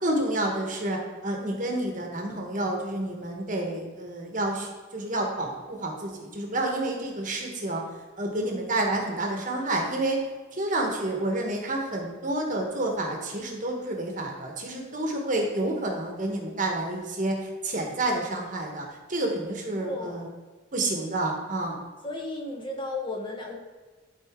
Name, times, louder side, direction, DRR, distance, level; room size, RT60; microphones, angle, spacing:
voice 1, 0.0-7.8 8.2-10.2 10.5-20.3 20.7-21.8, right 1 dB, 40° right, 1 dB, 1.1 m, -29 dB
voice 2, 19.8-20.2 22.0-23.6, left 2 dB, 25° left, 0 dB, 0.9 m, -34 dB
11.5 x 4.2 x 3.6 m, 1.3 s
head